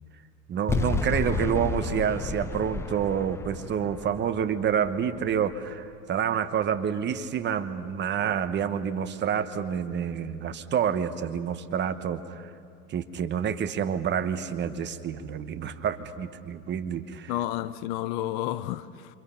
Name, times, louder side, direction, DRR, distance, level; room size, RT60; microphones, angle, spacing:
voice 1, 0.5-12.5 12.9-17.3, right 8 dB, 25° right, 1.0 m, -28 dB
sound 1, 0.7-5.9, left 4 dB, 5° left, 0.5 m, -32 dB
voice 2, 17.3-19.2, left 14 dB, 40° left, 0.8 m, -31 dB
28.0 x 25.5 x 5.7 m
hypercardioid pair, 125°, 45 cm